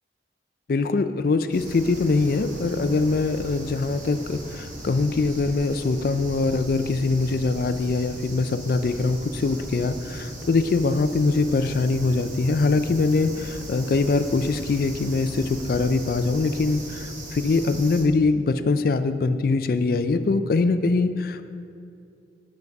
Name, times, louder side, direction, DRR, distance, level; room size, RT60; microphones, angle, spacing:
voice 1, 0.7-21.4, left 3 dB, 50° left, 11 dB, 0.3 m, -23 dB
sound 1, 1.5-18.0, right 1 dB, 40° right, 1.4 m, -38 dB
7.7 x 5.7 x 5.2 m, 2.5 s
head